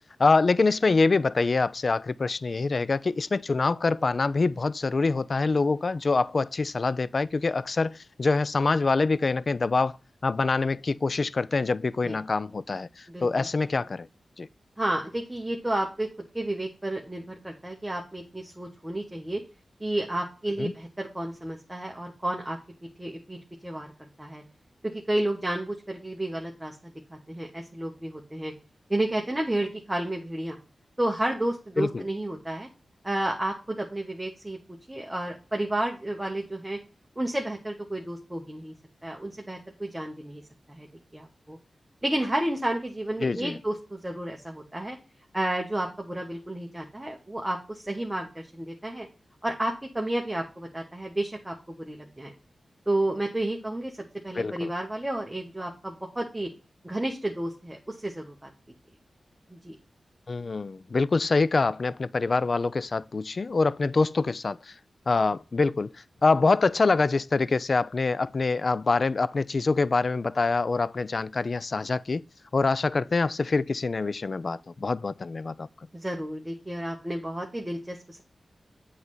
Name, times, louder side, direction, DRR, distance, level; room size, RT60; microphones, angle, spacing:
voice 1, 0.2-9.9 10.2-12.9 13.2-14.1 14.4-14.5 20.6-20.7 31.8-32.0 43.2-43.6 54.3-54.7 60.3-64.6 65.1-65.9 66.2-72.2 72.5-75.7, left 3 dB, 45° left, 0.3 m, -25 dB
voice 2, 13.1-13.5 14.8-16.1 16.3-19.4 19.8-22.6 23.0-23.9 24.2-24.4 24.8-28.5 28.9-30.6 31.0-32.7 33.0-34.6 34.9-36.8 37.2-38.7 39.0-40.4 40.7-40.9 41.1-41.6 42.0-45.0 45.3-49.1 49.4-52.3 52.9-53.9 54.2-56.5 56.8-58.5 59.5-59.7 75.9-78.2, right 1 dB, 15° right, 1.0 m, -31 dB
8.1 x 3.3 x 5.4 m
wide cardioid pair, 110°, 0 cm